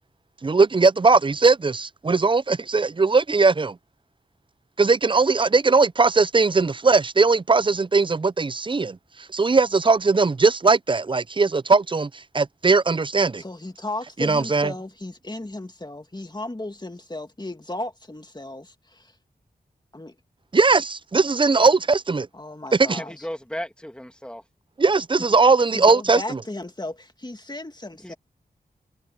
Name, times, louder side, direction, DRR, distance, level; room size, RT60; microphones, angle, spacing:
voice 1, 0.4-3.8 4.8-9.0 9.3-13.4 14.2-14.7 20.5-22.3 22.7-23.0 24.8-26.2, right 4 dB, 30° right, 0.4 m, -19 dB
voice 2, 13.4-19.2 19.9-20.2 22.3-23.3 25.7-28.2, left 2 dB, 25° left, 2.4 m, -35 dB
voice 3, 23.0-24.4 28.0-28.2, equal, 5° left, 2.4 m, -35 dB
cardioid pair, 45°, 17 cm